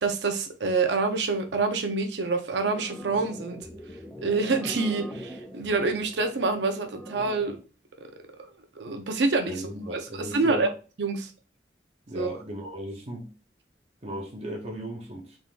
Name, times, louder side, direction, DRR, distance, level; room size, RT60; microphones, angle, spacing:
voice 1, 0.0-3.6 4.2-7.6 8.4-8.5 8.8-9.6 9.9-10.7 11.0-11.3 12.1-12.3, right 3 dB, 80° right, 0.7 m, -27 dB
sound 1, 2.6-7.6, equal, 5° left, 0.4 m, -42 dB
voice 2, 9.5-10.7 12.1-13.3 14.0-15.4, right 1 dB, 35° right, 0.9 m, -36 dB
3.8 x 3.6 x 2.5 m
head